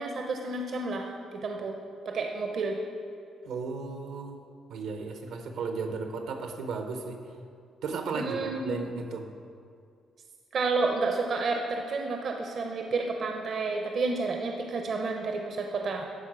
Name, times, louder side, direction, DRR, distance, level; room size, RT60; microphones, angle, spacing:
voice 1, 0.0-1.7 2.0-2.8 8.1-8.8 10.5-16.1, right 3 dB, 60° right, 2 dB, 0.7 m, -30 dB
voice 2, 3.4-4.4 4.7-7.2 7.8-9.3, right 4 dB, 85° right, 5 dB, 0.9 m, -35 dB
11.5 x 4.0 x 6.1 m, 2.3 s
cardioid pair, 90°, 0 cm